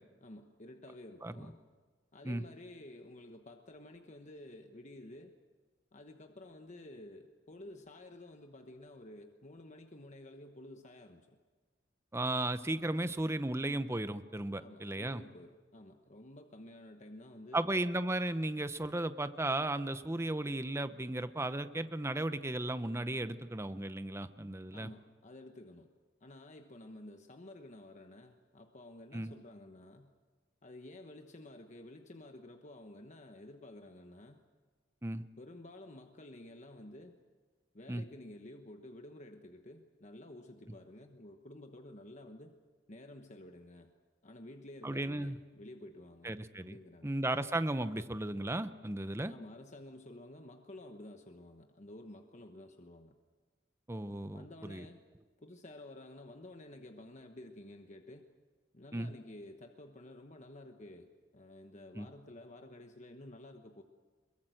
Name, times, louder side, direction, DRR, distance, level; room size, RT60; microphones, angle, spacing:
voice 1, 0.2-1.6 2.1-5.3 5.9-11.4 14.6-17.7 24.7-25.9 26.2-30.1 30.6-34.4 35.2-37.2 37.7-42.6 42.9-43.9 44.2-47.1 49.3-53.1 54.3-55.0 55.4-58.3 58.7-63.8, left 1 dB, 40° left, 5 dB, 1.1 m, -52 dB
voice 2, 12.1-15.2 17.5-24.9 29.1-29.3 35.0-35.2 37.9-38.0 44.8-45.4 46.2-46.8 47.0-49.3 53.9-54.9 58.9-59.1 62.0-62.1, right 1 dB, 15° right, 12 dB, 0.8 m, -35 dB
22.5 x 22.5 x 7.8 m, 1.4 s
head